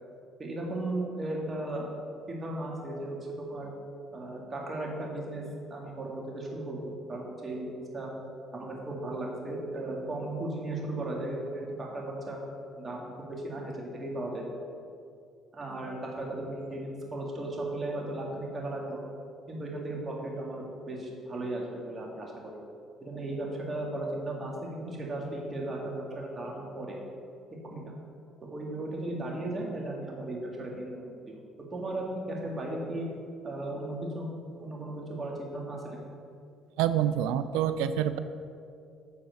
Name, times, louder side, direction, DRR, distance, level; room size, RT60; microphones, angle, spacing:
voice 1, 0.4-1.9 2.3-3.7 4.1-5.4 5.7-8.1 8.5-12.4 12.8-14.5 15.5-19.0 19.5-22.5 23.0-27.0 27.7-27.9 28.4-31.4 31.7-33.1 33.4-34.3 34.6-36.0, right 2 dB, 30° right, -2 dB, 1.9 m, -36 dB
voice 2, 36.8-38.2, right 10 dB, 90° right, 12 dB, 0.3 m, -27 dB
8.1 x 4.1 x 6.3 m, 2.5 s
cardioid pair, 90°, 0 cm